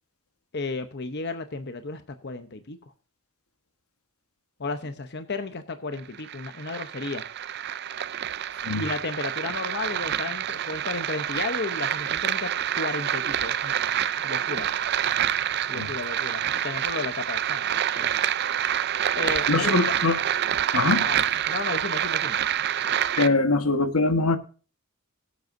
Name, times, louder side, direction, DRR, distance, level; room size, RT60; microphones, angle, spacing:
voice 1, 0.5-2.8 4.6-7.3 8.8-13.7 14.2-14.7 15.7-18.2 19.1-19.9 21.1-22.4, left 3 dB, 50° left, 0.8 m, -33 dB
sound 1, 5.9-23.3, right 10 dB, 50° right, 0.5 m, -27 dB
voice 2, 19.5-20.2 20.7-21.1 23.2-24.4, left 3 dB, 85° left, 1.3 m, -22 dB
22.5 x 7.9 x 2.6 m
head